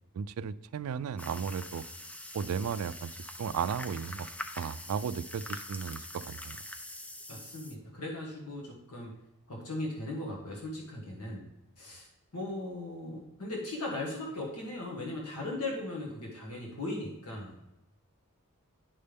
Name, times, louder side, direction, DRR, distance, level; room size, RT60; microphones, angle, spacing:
voice 1, 0.1-1.8 2.3-3.1 3.4-6.6, right 6 dB, 70° right, 14 dB, 0.3 m, -35 dB
sound 1, 1.2-7.7, left 1 dB, 5° left, 0.3 m, -44 dB
voice 2, 7.3-9.1 9.5-11.5 11.8-17.6, left 2 dB, 85° left, -2 dB, 1.6 m, -38 dB
9.6 x 5.5 x 3.4 m, 0.89 s
head